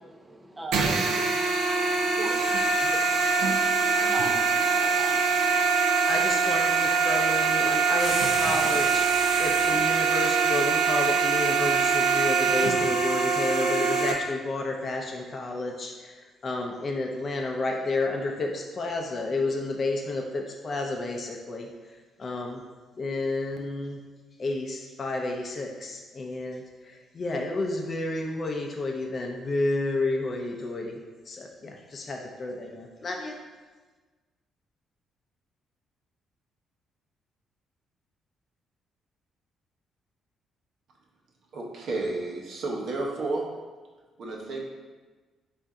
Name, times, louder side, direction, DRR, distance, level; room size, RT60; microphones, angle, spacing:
voice 1, 0.0-5.7, right 1 dB, 20° right, 3 dB, 0.3 m, -41 dB
sound 1, 0.7-14.1, right 5 dB, 90° right, 0.4 m, -23 dB
voice 2, 6.1-9.1 9.4-22.6 23.0-24.0 24.4-31.0 31.3-33.4, left 2 dB, 40° left, 1 dB, 0.5 m, -31 dB
sound 2, 8.0-9.8, left 2 dB, 90° left, 0.7 m, -35 dB
voice 3, 41.5-43.5 44.2-44.6, right 2 dB, 65° right, -1 dB, 0.8 m, -31 dB
4.2 x 2.5 x 3.5 m, 1.3 s
cardioid pair, 90°, 0 cm